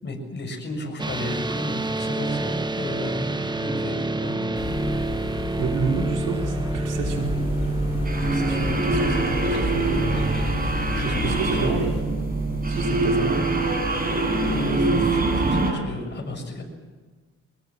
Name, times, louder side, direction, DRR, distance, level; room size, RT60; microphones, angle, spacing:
voice 1, 0.0-4.7 10.9-11.9 14.2-16.6, left 2 dB, 35° left, 2 dB, 6.6 m, -34 dB
sound 1, 1.0-15.2, right 2 dB, 15° right, 1.2 m, -29 dB
sound 2, 4.6-12.0, left 4 dB, 55° left, 7.4 m, -32 dB
voice 2, 5.6-7.3 8.2-9.9 10.9-11.9 12.7-13.4, right 5 dB, 85° right, 1 dB, 4.9 m, -29 dB
sound 3, 7.0-15.7, right 2 dB, 30° right, 5.4 m, -24 dB
24.0 x 20.0 x 7.5 m, 1.4 s
cardioid pair, 90°, 30 cm